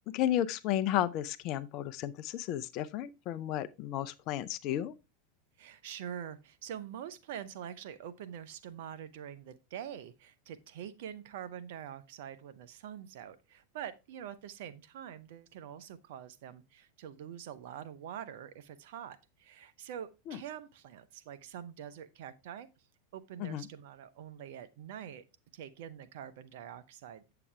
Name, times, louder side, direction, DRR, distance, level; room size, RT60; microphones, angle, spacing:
voice 1, 0.1-4.9 20.3-20.4 23.4-23.7, left 12 dB, 50° left, 0.6 m, -33 dB
voice 2, 5.6-22.7 23.1-25.2 25.5-27.3, right 9 dB, 65° right, 0.8 m, -45 dB
8.5 x 6.9 x 3.4 m
hypercardioid pair, 90°, 0 cm